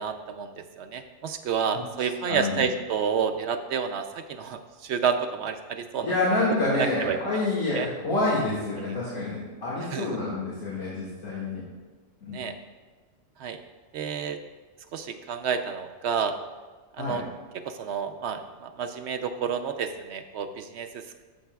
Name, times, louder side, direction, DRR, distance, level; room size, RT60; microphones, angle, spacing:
voice 1, 0.0-6.1 6.8-7.4 7.7-7.9 8.8-8.9 9.9-10.1 12.3-12.6 13.4-13.6 13.9-14.4 14.9-16.4 17.0-17.2 17.7-21.2, right 6 dB, 65° right, 7 dB, 0.8 m, -30 dB
voice 2, 2.3-2.6 6.0-11.6 12.2-12.4 17.0-17.2, left 2 dB, 85° left, -8 dB, 2.3 m, -28 dB
13.0 x 7.2 x 2.3 m, 1.4 s
omnidirectional pair, 1.4 m